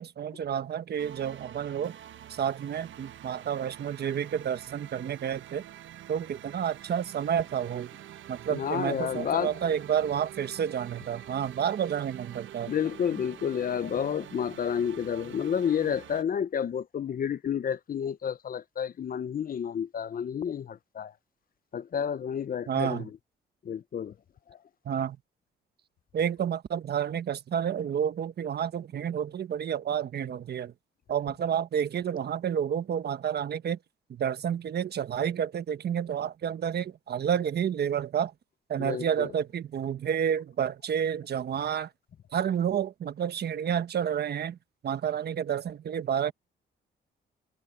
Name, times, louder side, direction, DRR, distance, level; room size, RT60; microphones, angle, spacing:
voice 1, 0.0-1.9 2.3-5.6 6.1-7.9 8.3-12.7 22.7-23.1 24.8-25.2 26.1-30.7 31.1-33.8 34.1-38.3 38.7-41.9 42.3-44.6 44.8-46.3, right 8 dB, 55° right, 1.3 m, -30 dB
sound 1, 1.0-16.2, right 11 dB, 75° right, 1.1 m, -47 dB
voice 2, 8.5-9.5 12.7-21.1 21.7-23.1 23.6-24.1 24.5-24.6 38.8-39.3, left 8 dB, 45° left, 0.8 m, -30 dB
cardioid pair, 90°, 20 cm